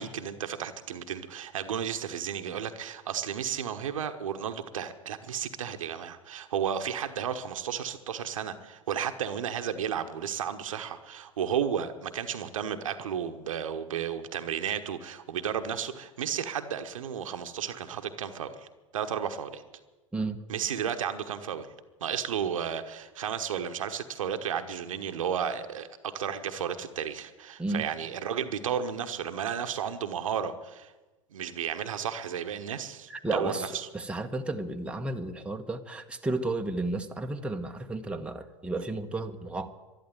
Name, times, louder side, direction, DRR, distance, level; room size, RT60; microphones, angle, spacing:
voice 1, 0.0-18.7 18.9-19.6 20.5-21.7 22.0-30.9 31.3-33.9, right 8 dB, 75° right, 8 dB, 1.1 m, -33 dB
voice 2, 33.1-39.7, right 2 dB, 5° right, 4 dB, 1.2 m, -33 dB
12.0 x 11.5 x 9.5 m, 1.2 s
hypercardioid pair, 95°, 17 cm